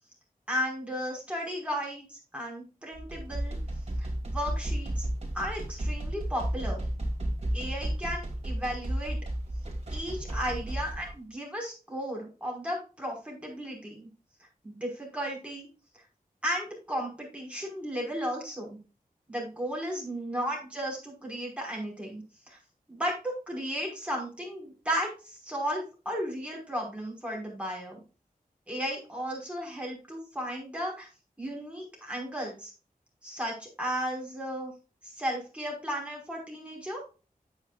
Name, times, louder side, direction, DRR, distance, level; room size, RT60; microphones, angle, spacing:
voice 1, 0.5-3.6 4.0-5.1 5.3-6.9 7.5-9.2 9.9-14.1 14.6-15.7 16.4-18.8 19.3-22.6 22.9-28.0 28.7-31.1 31.4-32.7 33.2-34.7 35.0-37.0, equal, 10° right, -1 dB, 5.3 m, -34 dB
sound 1, 2.9-11.1, right 1 dB, 45° right, 3.0 m, -33 dB
9.4 x 8.8 x 2.5 m, 0.32 s
wide cardioid pair, 85°, 15 cm